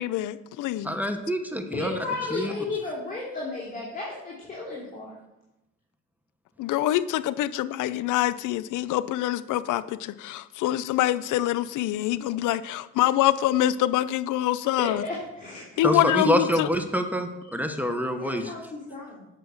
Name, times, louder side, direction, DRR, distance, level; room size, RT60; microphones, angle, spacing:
voice 1, 0.0-0.9 6.6-15.0 15.8-16.7, left 13 dB, 85° left, 16 dB, 0.6 m, -25 dB
voice 2, 0.9-2.0 2.3-2.5 15.8-18.4, equal, 5° right, 6 dB, 1.0 m, -26 dB
voice 3, 1.7-5.1 14.8-15.9 18.2-19.3, left 3 dB, 30° left, -6 dB, 3.3 m, -34 dB
9.2 x 6.3 x 6.5 m, 0.91 s
cardioid pair, 90°, 30 cm